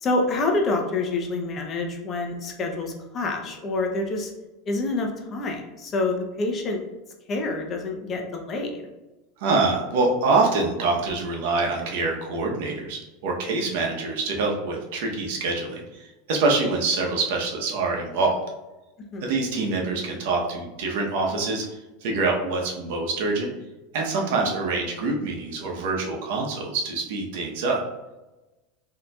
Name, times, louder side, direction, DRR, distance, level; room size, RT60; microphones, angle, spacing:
voice 1, 0.0-4.3 4.7-6.8 7.3-8.8 19.1-19.2, left 2 dB, 35° left, 2 dB, 0.6 m, -27 dB
voice 2, 9.4-18.4 19.2-23.5 23.9-27.8, right 3 dB, 70° right, 1 dB, 0.8 m, -25 dB
4.0 x 2.8 x 2.3 m, 1.0 s
supercardioid pair, 110°, 0 cm